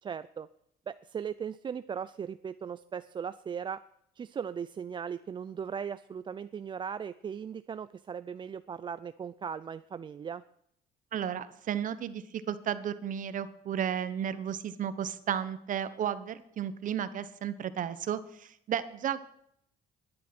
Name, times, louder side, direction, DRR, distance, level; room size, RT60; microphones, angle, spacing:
voice 1, 0.0-0.5 0.9-3.8 4.2-10.4, right 7 dB, 30° right, 14 dB, 0.4 m, -38 dB
voice 2, 11.1-19.3, right 9 dB, 50° right, 13 dB, 1.0 m, -33 dB
12.0 x 10.5 x 6.0 m, 0.72 s
cardioid pair, 110°, 17 cm